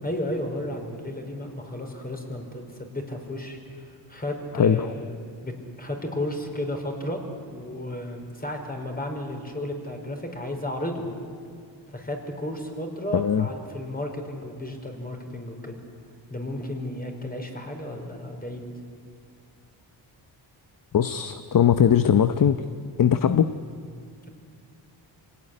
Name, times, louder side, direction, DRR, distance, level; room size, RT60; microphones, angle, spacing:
voice 1, 0.0-5.2 5.4-5.5 5.8-7.2 7.5-11.1 11.9-15.8 16.3-18.7, left 1 dB, 20° left, 3 dB, 5.1 m, -33 dB
voice 2, 13.1-13.5 20.9-22.6 23.0-23.5, left 8 dB, 45° left, 11 dB, 0.9 m, -20 dB
26.0 x 17.5 x 10.0 m, 2.2 s
cardioid pair, 80°, 46 cm